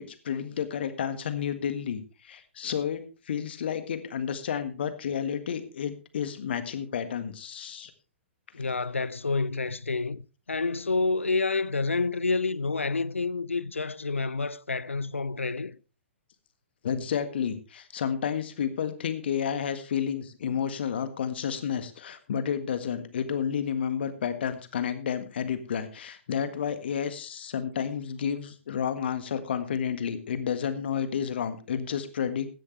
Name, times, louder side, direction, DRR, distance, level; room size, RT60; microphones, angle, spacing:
voice 1, 0.0-7.9 8.6-8.7 16.8-32.5, left 8 dB, 55° left, 1.7 m, -31 dB
voice 2, 8.5-10.2 10.5-15.8, left 3 dB, 80° left, 0.5 m, -28 dB
15.5 x 11.0 x 3.3 m
figure-of-eight pair, 115°, 7 cm